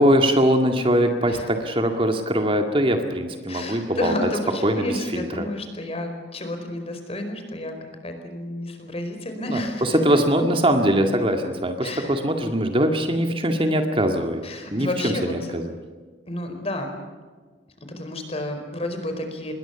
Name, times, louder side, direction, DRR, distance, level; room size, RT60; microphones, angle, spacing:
voice 1, 0.0-4.1 4.6-5.5 9.4-14.4 14.7-15.6, equal, 30° right, 5 dB, 2.0 m, -22 dB
voice 2, 3.5-10.0 11.8-12.1 14.4-15.5 16.3-17.0 17.9-19.5, left 1 dB, 35° left, 5 dB, 4.7 m, -31 dB
26.5 x 21.5 x 7.1 m, 1.4 s
head